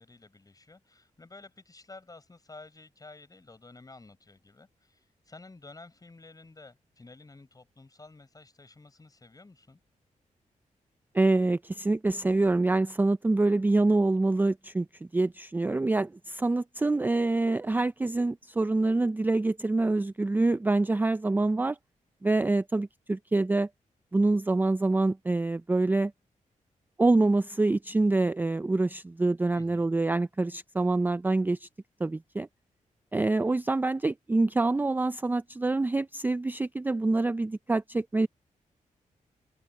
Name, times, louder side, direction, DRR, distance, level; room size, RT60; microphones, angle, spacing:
voice 1, 0.0-9.8 29.5-29.9, left 3 dB, 25° left, 6.1 m, -51 dB
voice 2, 11.1-14.9 15.1-21.8 22.2-23.7 24.1-26.1 27.0-31.7 32.0-32.5 33.1-38.3, right 2 dB, 15° right, 0.4 m, -26 dB
cardioid pair, 90°, 14 cm